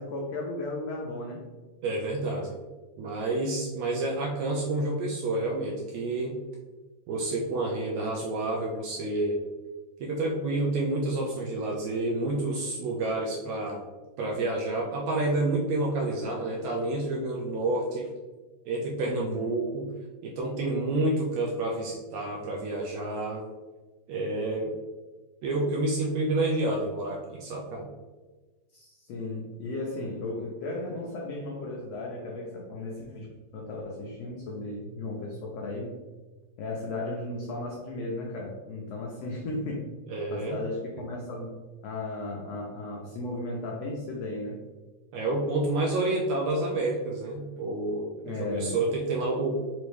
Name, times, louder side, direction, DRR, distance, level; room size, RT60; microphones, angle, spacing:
voice 1, 0.0-1.4 19.0-19.5 28.7-33.3 33.5-35.9 36.6-39.9 40.3-41.6 41.8-44.6 48.2-48.8, left 2 dB, 85° left, -2 dB, 1.4 m, -35 dB
voice 2, 1.8-2.5 3.0-6.4 7.1-9.4 10.0-13.8 14.2-18.1 18.7-19.9 20.2-23.4 24.1-24.7 25.4-27.9 40.1-40.6 45.1-49.6, right 2 dB, 85° right, -1 dB, 1.6 m, -29 dB
5.3 x 3.1 x 3.2 m, 1.3 s
omnidirectional pair, 3.7 m